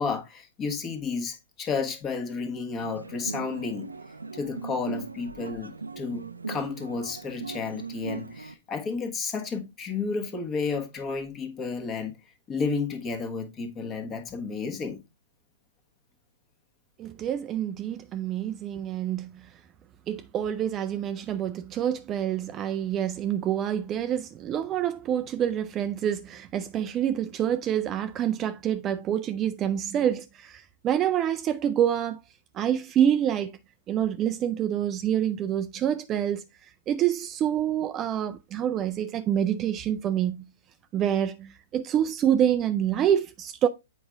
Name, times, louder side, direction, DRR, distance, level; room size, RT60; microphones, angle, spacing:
voice 1, 0.0-3.9 4.3-12.2 12.5-15.0, left 4 dB, 25° left, 1.3 m, -32 dB
sound 1, 2.8-8.5, right 4 dB, 90° right, 0.5 m, -39 dB
voice 2, 17.0-19.5 20.1-32.2 32.5-33.5 33.9-36.4 36.9-40.5 40.9-43.7, right 10 dB, 25° right, 0.4 m, -27 dB
7.8 x 5.0 x 3.4 m
hypercardioid pair, 120°, 0 cm